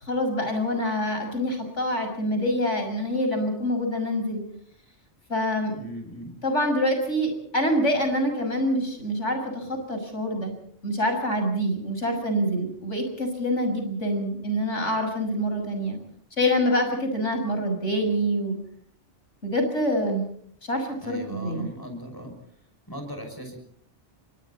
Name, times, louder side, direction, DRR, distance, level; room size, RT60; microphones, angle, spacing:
voice 1, 0.0-4.4 5.3-5.7 6.4-10.5 10.8-16.0 16.4-18.6 19.4-20.3 20.6-21.7, equal, 85° left, 5 dB, 6.7 m, -26 dB
voice 2, 5.8-6.4 21.0-22.4 22.9-23.6, equal, 20° left, 4 dB, 6.3 m, -38 dB
30.0 x 24.0 x 4.2 m, 0.63 s
omnidirectional pair, 1.2 m